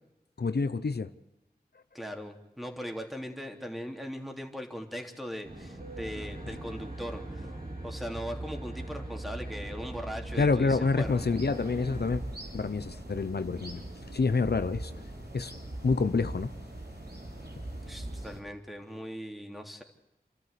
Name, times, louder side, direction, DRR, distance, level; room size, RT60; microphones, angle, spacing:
voice 1, 0.4-1.1 10.4-12.2 12.5-13.8 14.1-14.9 15.3-15.5 15.8-16.5, left 4 dB, 85° left, 0.8 m, -27 dB
voice 2, 1.9-7.5 7.8-11.3 17.8-19.8, equal, ahead, 3.3 m, -39 dB
Aircraft, 5.5-12.2, right 1 dB, 65° right, 4.7 m, -40 dB
sound 1, 11.0-18.4, right 1 dB, 80° right, 4.2 m, -41 dB
28.5 x 13.5 x 8.4 m
wide cardioid pair, 45°, 16 cm